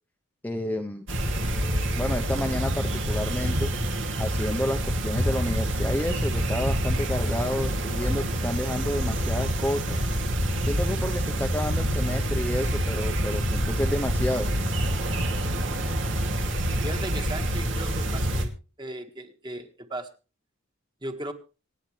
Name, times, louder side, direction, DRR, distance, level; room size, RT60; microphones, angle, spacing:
voice 1, 0.4-1.1 2.0-3.7 4.2-10.0 10.6-14.5, left 1 dB, 10° left, 3 dB, 0.9 m, -30 dB
sound 1, 1.1-18.5, right 1 dB, 65° right, 2.7 m, -27 dB
voice 2, 15.4-16.2 16.8-18.5 18.8-20.1 21.0-21.3, right 1 dB, 20° right, 6 dB, 1.8 m, -37 dB
26.0 x 9.7 x 3.3 m, 0.35 s
head